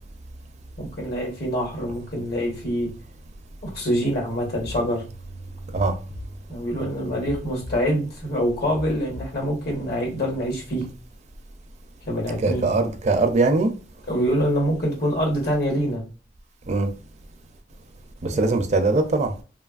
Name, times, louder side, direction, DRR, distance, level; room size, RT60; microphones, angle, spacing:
voice 1, 0.8-2.9 3.6-5.0 6.5-10.9 12.0-12.7 14.1-16.0 18.3-18.4, equal, 60° left, 1.2 m, -25 dB
sound 1, 4.6-4.8 5.7-6.3 7.2-7.8 8.7-9.3, left 1 dB, 85° left, 0.4 m, -37 dB
voice 2, 12.4-13.7 16.7-16.9 18.2-19.3, right 3 dB, 40° right, 0.4 m, -21 dB
2.9 x 2.3 x 2.4 m
head